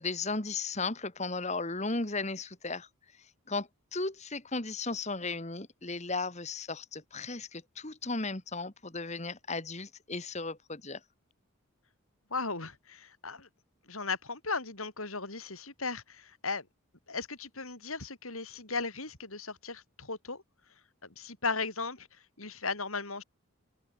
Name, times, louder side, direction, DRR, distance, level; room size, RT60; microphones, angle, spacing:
voice 1, 0.0-2.9 3.5-11.0, left 3 dB, 30° left, 1.8 m, -35 dB
voice 2, 12.3-13.5 13.9-16.7 17.1-20.4 21.0-23.2, left 4 dB, 75° left, 6.1 m, -36 dB
head